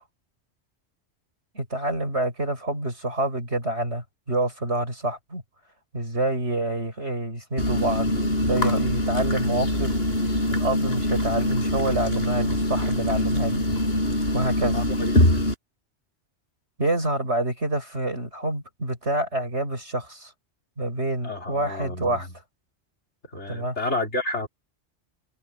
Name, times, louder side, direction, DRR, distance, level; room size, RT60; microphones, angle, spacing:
voice 1, 1.5-5.4 5.9-9.9 10.5-13.6 14.3-14.8 16.8-20.3 20.8-22.3 23.5-23.8, right 1 dB, 80° right, 8.0 m, -27 dB
sound 1, 7.6-15.5, left 1 dB, 60° left, 7.7 m, -23 dB
voice 2, 14.7-15.4 21.2-22.3 23.3-24.5, left 2 dB, 90° left, 5.1 m, -30 dB
omnidirectional pair, 1.1 m